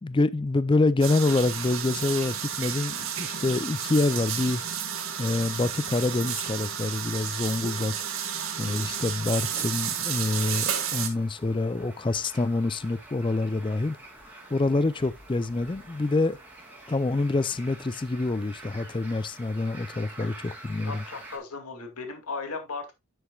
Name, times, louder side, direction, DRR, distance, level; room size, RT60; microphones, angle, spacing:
voice 1, 0.0-4.6 5.2-7.9 8.6-14.0 14.5-16.4 16.9-21.0, left 2 dB, 20° left, 0.4 m, -26 dB
sound 1, 1.0-11.1, right 8 dB, 70° right, 1.8 m, -32 dB
sound 2, 8.5-21.4, right 2 dB, 5° right, 2.7 m, -48 dB
voice 2, 20.8-22.9, left 4 dB, 90° left, 2.2 m, -36 dB
9.8 x 7.9 x 2.3 m
head